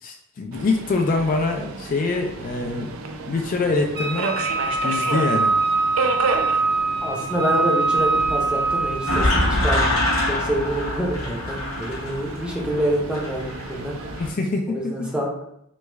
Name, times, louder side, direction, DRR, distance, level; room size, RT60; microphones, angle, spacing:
voice 1, 0.0-2.9 3.3-4.4 4.8-5.5 14.2-15.1, left 3 dB, 40° left, 3 dB, 0.3 m, -24 dB
Subway metro underground, 0.5-14.3, right 4 dB, 80° right, 0.4 m, -32 dB
Wind instrument woodwind instrument, 3.9-9.3, right 3 dB, 55° right, 0.9 m, -23 dB
voice 2, 7.0-10.0 10.3-13.9 14.7-15.3, equal, 5° right, -3 dB, 0.6 m, -26 dB
sound 1, 8.0-14.3, left 1 dB, 80° left, 0.7 m, -25 dB
3.1 x 2.2 x 3.3 m, 0.73 s
head